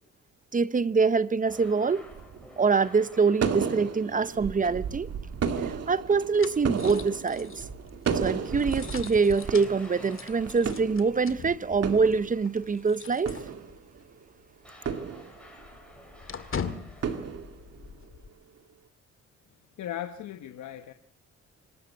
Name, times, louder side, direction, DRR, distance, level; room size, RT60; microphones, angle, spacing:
voice 1, 0.5-2.0 2.6-5.1 5.6-7.6 8.1-13.4, right 5 dB, 25° right, 0.8 m, -25 dB
sound 1, 1.4-4.4 8.2-11.1 14.6-17.7, left 1 dB, 5° left, 7.5 m, -52 dB
sound 2, 1.6-2.5 3.4-9.5 9.8-9.9 10.3-11.4 11.7-12.7 13.1-14.1 14.9-15.7 17.0-18.1, right 6 dB, 55° right, 2.2 m, -33 dB
sound 3, 5.2-14.0 14.3-14.5 14.8-18.3, left 6 dB, 45° left, 2.0 m, -43 dB
voice 2, 19.8-20.9, left 11 dB, 75° left, 1.2 m, -37 dB
25.5 x 12.5 x 8.2 m
cardioid pair, 90°, 30 cm